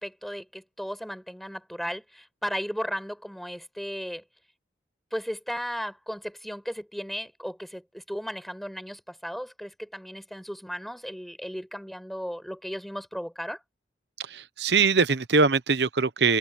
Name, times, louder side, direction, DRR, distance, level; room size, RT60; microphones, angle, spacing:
voice 1, 0.0-4.2 5.1-13.6, equal, ahead, 5.4 m, -35 dB
voice 2, 14.3-16.4, right 4 dB, 70° right, 1.0 m, -22 dB
head